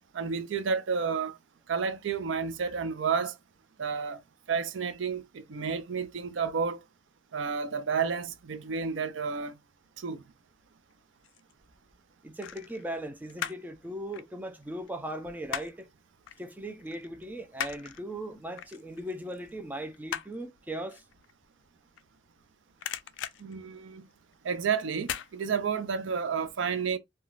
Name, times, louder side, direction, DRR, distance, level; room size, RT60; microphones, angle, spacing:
voice 1, 0.1-1.4 1.7-3.3 3.8-4.2 4.5-6.8 7.3-9.5 10.0-10.2 23.4-24.0 24.4-27.0, right 6 dB, 85° right, 0.5 m, -31 dB
sound 1, 10.9-11.5 12.4-13.7 14.0-15.9 16.3-16.4 16.8-22.4 22.7-24.4 25.0-25.3 25.7-25.8, left 10 dB, 75° left, 0.3 m, -39 dB
voice 2, 12.2-15.9 16.4-21.0, right 1 dB, 10° right, 0.3 m, -38 dB
3.0 x 2.2 x 2.3 m
head